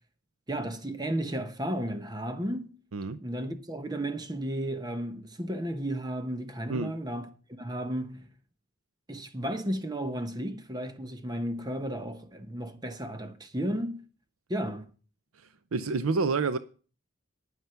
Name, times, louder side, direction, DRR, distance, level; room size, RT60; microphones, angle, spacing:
voice 1, 0.5-2.7 3.2-7.3 7.6-8.3 9.1-14.0 14.5-14.9, right 1 dB, 20° right, 0.9 m, -33 dB
voice 2, 15.7-16.6, right 4 dB, 90° right, 0.6 m, -28 dB
9.3 x 9.3 x 5.7 m
head